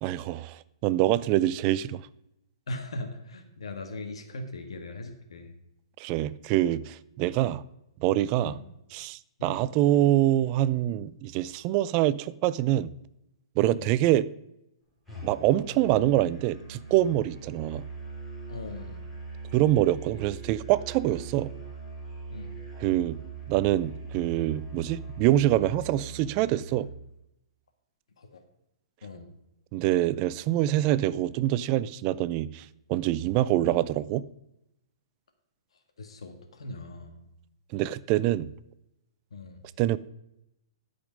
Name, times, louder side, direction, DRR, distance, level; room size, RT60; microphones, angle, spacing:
voice 1, 0.0-2.0 6.0-7.6 8.0-8.6 8.9-12.9 13.6-14.3 15.2-17.8 19.5-21.5 22.8-23.2 23.5-26.9 29.7-34.3 37.7-38.5 39.8-40.0, right 14 dB, 35° right, 0.4 m, -25 dB
voice 2, 2.7-5.5 8.4-8.6 9.4-9.7 13.7-13.9 18.5-19.0 22.3-22.6 28.2-28.4 29.0-29.3 36.0-37.2 39.3-39.6, left 2 dB, 85° left, 1.6 m, -40 dB
Musical instrument, 15.1-26.9, right 3 dB, ahead, 3.2 m, -41 dB
12.5 x 5.2 x 5.1 m
hypercardioid pair, 145°, 3 cm